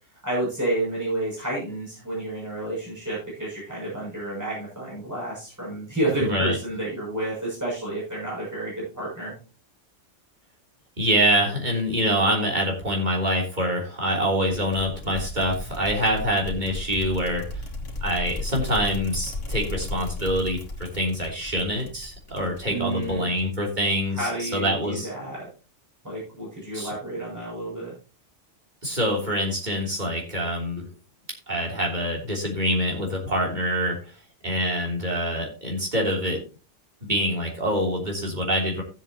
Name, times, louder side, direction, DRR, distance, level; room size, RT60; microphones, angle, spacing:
voice 1, 0.2-9.3 22.7-23.3 24.1-25.5 26.0-27.9, right 1 dB, 15° right, -6 dB, 6.8 m, -30 dB
voice 2, 6.2-6.6 11.0-17.6 18.0-25.1 26.7-26.9 28.8-30.9 31.5-34.0 34.4-36.4 37.0-38.8, equal, 35° right, -1 dB, 3.3 m, -25 dB
sound 1, 14.5-23.7, left 2 dB, 75° left, 2.3 m, -35 dB
15.5 x 7.6 x 2.9 m, 0.33 s
omnidirectional pair, 1.3 m